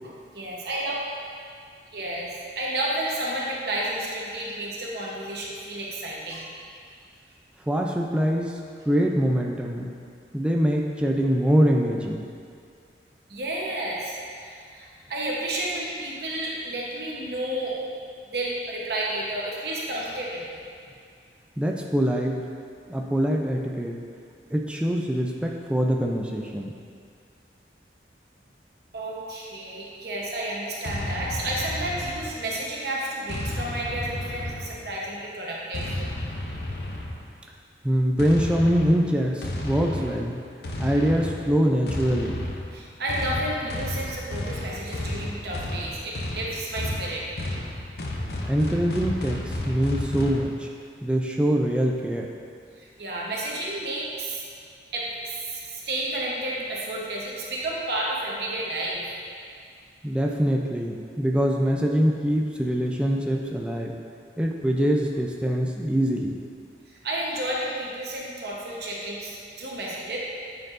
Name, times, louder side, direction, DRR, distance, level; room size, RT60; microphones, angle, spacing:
voice 1, 0.0-1.0 1.9-6.5 13.3-17.8 18.3-20.5 28.9-35.9 42.7-47.2 52.8-54.4 54.9-59.1 66.9-70.2, right 1 dB, 60° right, -4 dB, 0.9 m, -31 dB
voice 2, 7.7-8.6 8.9-9.9 10.3-12.3 21.6-22.4 22.9-24.0 24.5-26.7 37.8-40.4 40.8-42.4 48.4-50.7 51.0-52.3 60.0-63.9 64.4-66.4, equal, 5° right, 0 dB, 0.3 m, -24 dB
sound 1, 30.8-32.6 33.3-35.0 35.7-37.4 38.2-50.4, left 1 dB, 60° left, 0.6 m, -32 dB
8.8 x 4.6 x 2.5 m, 2.3 s
head